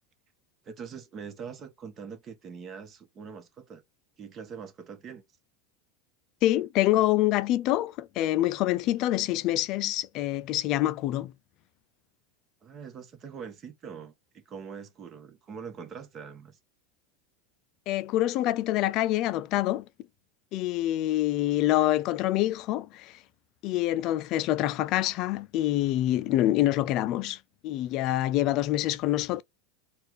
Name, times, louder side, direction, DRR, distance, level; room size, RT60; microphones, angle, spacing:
voice 1, 0.6-3.8 4.2-5.2 12.6-16.6, right 6 dB, 35° right, 1.2 m, -43 dB
voice 2, 6.4-11.3 17.9-19.9 20.5-23.2 23.6-29.4, left 14 dB, 50° left, 0.4 m, -26 dB
4.4 x 2.4 x 4.8 m
hypercardioid pair, 105°, 0 cm